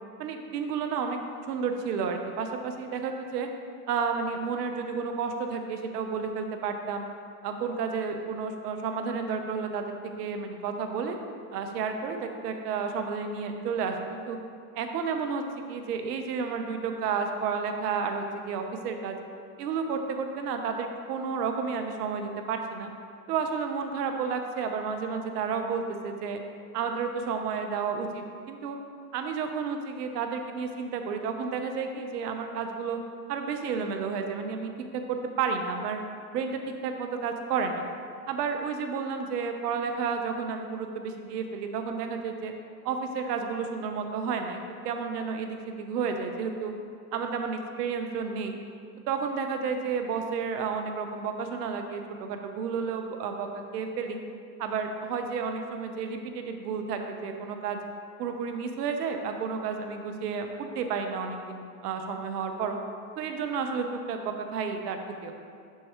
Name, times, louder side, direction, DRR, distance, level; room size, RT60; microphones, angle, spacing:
voice 1, 0.2-1.2 1.5-3.5 3.9-7.1 7.4-11.2 11.5-14.4 14.7-15.4 15.7-19.2 19.6-22.9 23.3-26.4 26.7-28.8 29.1-33.0 33.3-34.7 35.1-36.0 36.3-37.8 38.3-42.5 42.8-46.7 47.1-48.6 49.1-54.2 54.6-57.8 58.2-62.8 63.2-65.3, right 5 dB, 90° right, 5 dB, 0.9 m, -31 dB
8.4 x 6.6 x 3.0 m, 2.3 s
supercardioid pair, 105°, 46 cm